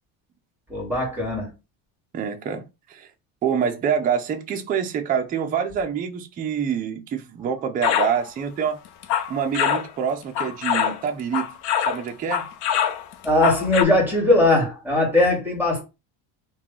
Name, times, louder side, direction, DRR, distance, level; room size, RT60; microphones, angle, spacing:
voice 1, 0.7-1.5 13.2-15.8, left 2 dB, 5° right, 1.5 m, -20 dB
voice 2, 2.1-3.1 3.4-8.8 9.3-11.5 11.9-12.5, right 7 dB, 20° right, 0.3 m, -26 dB
sound 1, 7.8-8.2 8.9-9.9 10.4-12.0 12.3-13.8, left 9 dB, 75° left, 0.7 m, -24 dB
2.9 x 2.2 x 3.6 m
cardioid pair, 130°, 48 cm